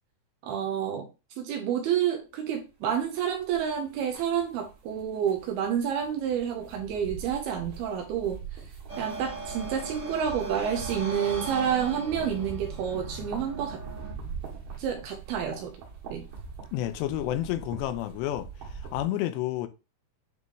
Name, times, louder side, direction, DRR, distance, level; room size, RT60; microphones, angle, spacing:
voice 1, 0.4-1.1 1.4-8.6 9.0-13.8 14.8-15.7 16.1-16.3, right 8 dB, 75° right, 2.6 m, -29 dB
sound 1, 2.8-19.0, right 5 dB, 60° right, 3.0 m, -43 dB
sound 2, 8.9-14.1, right 2 dB, 30° right, 1.8 m, -39 dB
voice 2, 16.7-18.5 18.9-19.7, left 13 dB, 85° left, 2.8 m, -30 dB
9.1 x 3.6 x 3.1 m
omnidirectional pair, 4.9 m